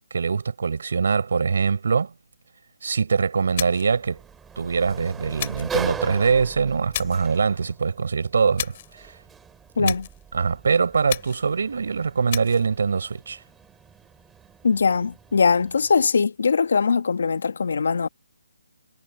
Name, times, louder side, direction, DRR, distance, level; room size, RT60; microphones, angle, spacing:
voice 1, 0.1-2.1 2.8-4.2 4.6-8.7 9.8-9.9 10.3-13.4, right 5 dB, 60° right, 5.4 m, -23 dB
Sliding door, 3.4-16.0, right 7 dB, 5° right, 3.4 m, -40 dB
sound 1, 3.6-4.0 5.4-5.8 6.9-7.3 8.6-8.9 9.8-10.2 11.1-11.5 12.3-12.7, left 11 dB, 35° left, 2.5 m, -32 dB
voice 2, 9.8-10.1 14.6-18.1, left 5 dB, 65° left, 1.5 m, -21 dB
hypercardioid pair, 160°, 0 cm